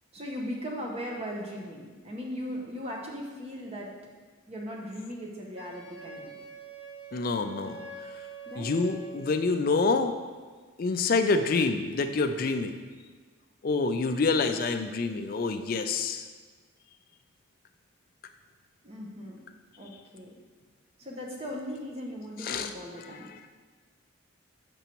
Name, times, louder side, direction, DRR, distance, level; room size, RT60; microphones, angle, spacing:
voice 1, 0.1-3.9 4.5-6.4 8.5-8.7 18.8-19.4 19.8-20.4 21.0-23.3, equal, 30° right, -1 dB, 0.9 m, -38 dB
Wind instrument woodwind instrument, 5.6-9.7, right 3 dB, 65° left, 0.8 m, -45 dB
voice 2, 7.1-7.8 8.6-10.1 10.8-12.8 13.6-16.2 22.4-22.7, left 3 dB, 45° left, 7 dB, 0.4 m, -27 dB
6.7 x 6.0 x 3.0 m, 1.5 s
head